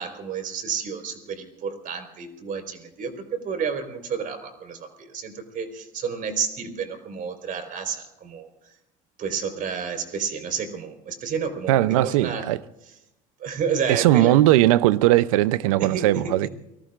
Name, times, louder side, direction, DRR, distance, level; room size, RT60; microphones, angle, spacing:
voice 1, 0.0-8.5 9.2-12.5 13.4-14.3 15.8-16.5, right 6 dB, 50° right, 4.3 m, -30 dB
voice 2, 11.7-12.6 13.9-16.5, right 15 dB, 85° right, 0.6 m, -19 dB
29.0 x 19.5 x 2.5 m
hypercardioid pair, 75°, 17 cm